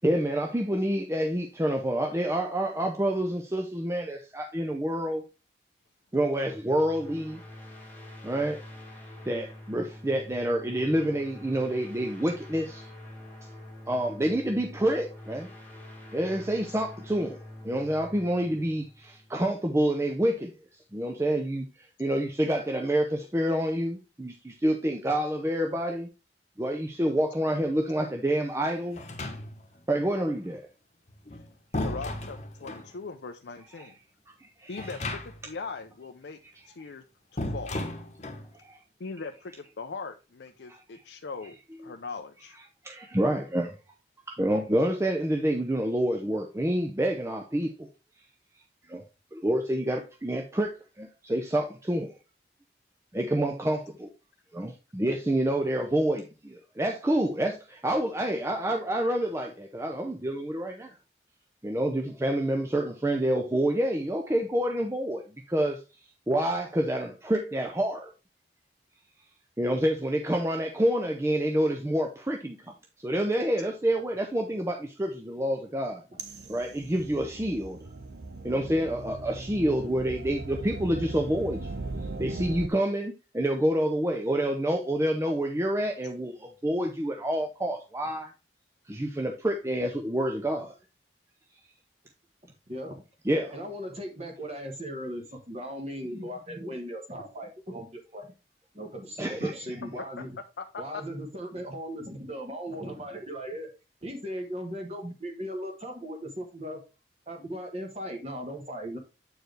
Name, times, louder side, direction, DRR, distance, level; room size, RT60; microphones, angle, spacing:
voice 1, 0.0-5.2 6.1-7.4 8.2-8.6 9.3-12.9 13.9-15.5 16.1-17.4 17.6-20.5 20.9-26.1 26.6-29.0 29.9-30.7 33.8-33.9 34.4-35.0 38.5-38.8 40.7-40.8 42.8-43.8 44.3-47.9 48.9-49.0 49.3-52.2 53.1-54.1 54.5-60.9 61.6-65.2 65.5-65.8 66.3-68.1 69.6-72.7 73.0-76.0 76.5-77.8 78.4-81.8 82.2-88.3 88.9-90.8 93.2-93.6 99.2-99.6, right 1 dB, 15° right, 0.6 m, -28 dB
sound 1, 6.4-19.8, left 1 dB, 10° left, 1.3 m, -46 dB
sound 2, 28.9-29.8 31.1-32.9 34.7-35.6 35.8-35.9 37.4-38.5, left 1 dB, 40° left, 1.1 m, -35 dB
voice 2, 31.8-33.9 34.7-36.4 36.7-37.0 37.3-37.7 39.0-42.6 99.4-99.5 100.2-100.3 100.6-101.0, left 4 dB, 80° left, 0.5 m, -40 dB
sound 3, 76.2-82.7, right 2 dB, 70° right, 0.9 m, -38 dB
voice 3, 92.4-93.0 93.5-98.3 98.7-100.4 100.8-103.7 104.0-106.8 107.3-109.0, equal, 35° right, 1.3 m, -38 dB
7.7 x 4.7 x 3.2 m
head